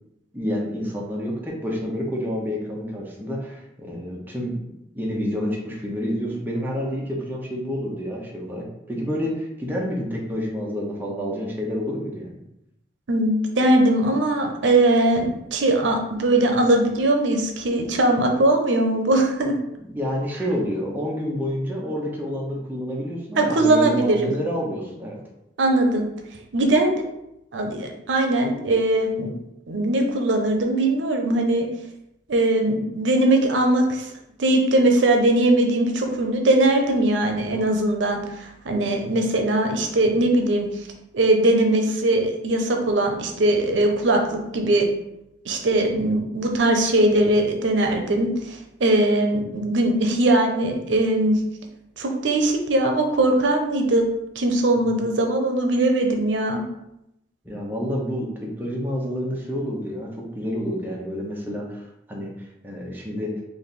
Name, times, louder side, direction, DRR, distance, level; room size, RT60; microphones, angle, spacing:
voice 1, 0.3-12.4 19.8-25.2 57.4-63.3, equal, 10° right, -3 dB, 0.7 m, -29 dB
voice 2, 13.1-19.5 23.4-24.3 25.6-26.1 26.5-27.1 27.5-29.3 29.7-31.7 32.3-34.1 34.4-40.7 41.1-44.9 45.5-51.4 52.0-54.1 54.4-56.6, right 1 dB, 90° right, 3 dB, 0.6 m, -20 dB
3.3 x 2.5 x 4.1 m, 0.85 s
head